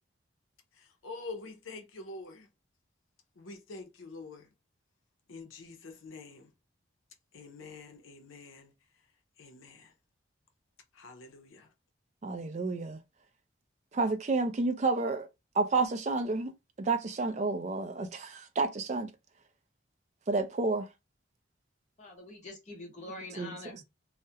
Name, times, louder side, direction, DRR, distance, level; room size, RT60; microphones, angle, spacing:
voice 1, 0.8-2.5 3.4-4.5 5.3-6.5 7.3-8.7 9.4-9.9 10.9-11.7, left 3 dB, 85° left, 0.6 m, -46 dB
voice 2, 12.2-13.0 13.9-15.3 15.6-16.5 16.8-19.1 20.3-20.9 23.4-23.5, right 3 dB, 35° right, 0.3 m, -30 dB
voice 3, 22.0-23.8, left 2 dB, 35° left, 0.9 m, -45 dB
2.3 x 2.1 x 2.7 m
head